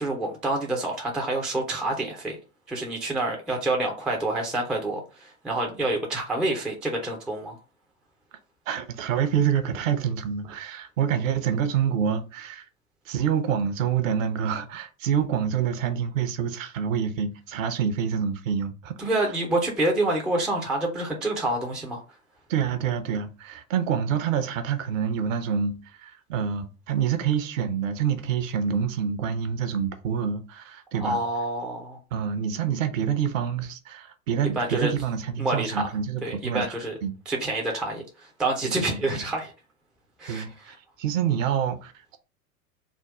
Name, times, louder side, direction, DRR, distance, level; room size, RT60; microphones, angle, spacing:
voice 1, 0.0-2.4 2.7-7.6 19.0-22.0 30.9-32.0 34.6-34.9 35.4-35.9 36.2-36.9 37.3-38.0 38.4-39.5 40.2-40.4, right 2 dB, ahead, 0.3 m, -27 dB
voice 2, 8.7-12.6 13.1-19.3 22.5-31.2 32.1-37.1 38.6-39.2 40.3-42.2, right 8 dB, 60° right, 0.8 m, -27 dB
3.6 x 2.3 x 4.5 m
figure-of-eight pair, 80°, 44 cm